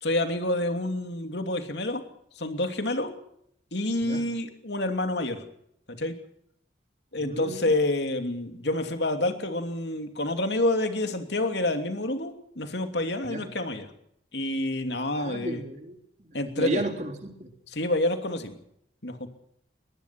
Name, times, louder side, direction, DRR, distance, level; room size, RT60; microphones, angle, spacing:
voice 1, 0.0-2.0 2.4-3.1 3.7-5.4 5.9-6.1 7.1-13.9 14.3-15.6 16.3-16.8 17.7-18.6 19.0-19.3, left 1 dB, 70° left, 6 dB, 2.9 m, -28 dB
voice 2, 7.2-7.7 13.2-13.5 15.1-15.9 16.6-17.5, right 1 dB, 40° right, 5 dB, 3.3 m, -33 dB
22.0 x 20.0 x 6.1 m, 0.72 s
head